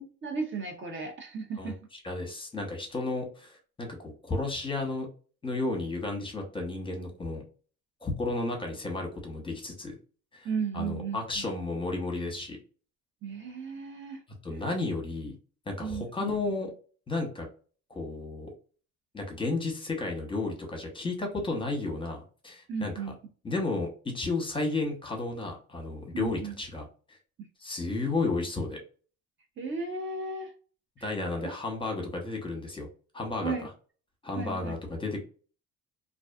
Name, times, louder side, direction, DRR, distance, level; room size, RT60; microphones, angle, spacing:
voice 1, 0.0-1.8 10.4-11.2 13.2-14.2 15.8-16.3 22.7-23.1 26.1-26.5 29.6-30.5 31.0-31.2 33.4-33.7 34.3-34.7, right 4 dB, 40° right, 4 dB, 0.6 m, -35 dB
voice 2, 1.6-5.1 5.4-7.4 8.0-9.9 10.3-10.5 10.7-12.6 14.4-15.3 15.7-16.7 17.1-17.5 17.9-18.5 19.1-23.1 23.4-26.9 27.6-28.8 31.0-32.9 33.1-33.7 34.2-35.2, left 3 dB, 15° left, 2 dB, 0.8 m, -33 dB
2.4 x 2.3 x 2.3 m, 0.40 s
cardioid pair, 95°, 30 cm